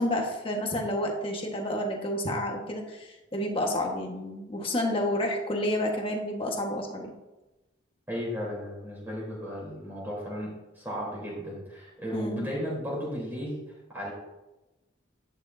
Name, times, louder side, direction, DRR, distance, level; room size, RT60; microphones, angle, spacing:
voice 1, 0.0-7.1 12.1-12.5, left 1 dB, 25° left, 1 dB, 1.5 m, -30 dB
voice 2, 8.1-10.5 10.7-13.6 13.9-14.1, equal, 10° right, -6 dB, 3.7 m, -34 dB
11.5 x 10.0 x 2.8 m, 1.0 s
head